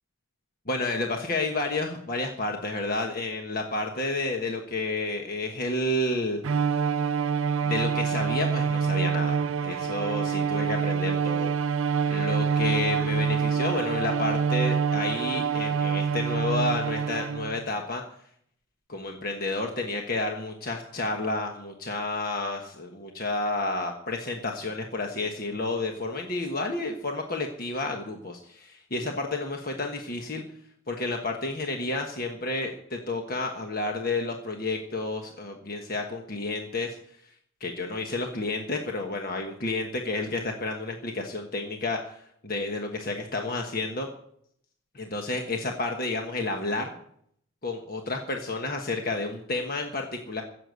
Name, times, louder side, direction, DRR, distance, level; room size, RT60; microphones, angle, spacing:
voice 1, 0.7-6.4 7.6-11.5 12.1-18.0 18.9-30.4 30.9-37.0 37.6-44.1 44.9-46.9 47.6-50.4, left 2 dB, 45° left, 2 dB, 1.3 m, -30 dB
Bowed string instrument, 6.4-17.7, right 6 dB, 65° right, 0.5 m, -26 dB
16.0 x 8.0 x 8.0 m, 0.69 s
head